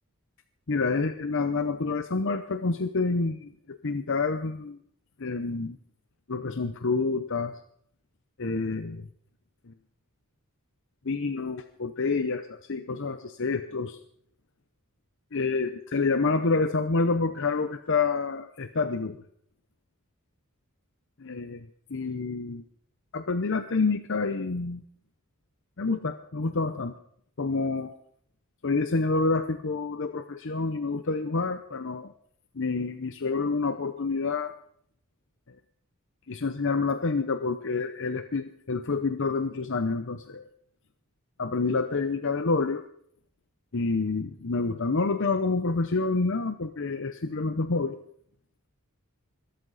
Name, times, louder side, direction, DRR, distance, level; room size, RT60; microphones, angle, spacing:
voice 1, 0.7-4.8 5.2-5.8 6.3-7.5 8.4-9.0 9.7-9.8 11.0-14.0 15.3-19.2 21.2-22.6 23.1-24.8 25.8-26.9 27.4-27.9 28.6-32.1 32.6-34.5 36.3-40.5 41.4-42.8 43.7-48.0, left 3 dB, 60° left, 9 dB, 0.8 m, -28 dB
21.5 x 13.0 x 4.1 m, 0.64 s
head